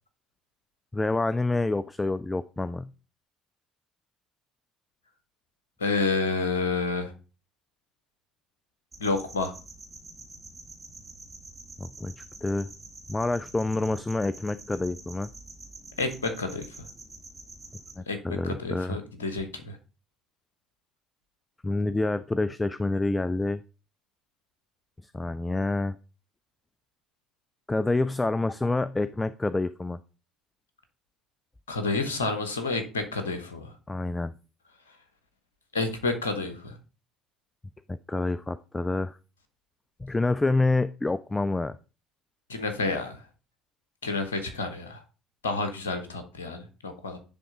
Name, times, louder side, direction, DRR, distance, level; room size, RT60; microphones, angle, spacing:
voice 1, 0.9-2.9 11.8-12.7 13.1-15.3 18.0-19.0 21.6-23.6 25.1-26.0 27.7-30.0 33.9-34.3 37.9-39.2 40.0-41.8, left 2 dB, 15° left, 15 dB, 0.3 m, -27 dB
voice 2, 5.8-7.1 9.0-9.5 16.0-16.9 18.1-19.8 31.7-33.8 35.7-36.8 42.5-43.2 44.0-45.0 45.4-47.2, left 3 dB, 85° left, 8 dB, 1.0 m, -29 dB
sound 1, 8.9-17.9, right 2 dB, 25° right, 2.0 m, -47 dB
10.0 x 3.5 x 3.8 m, 0.34 s
figure-of-eight pair, 55°, 0 cm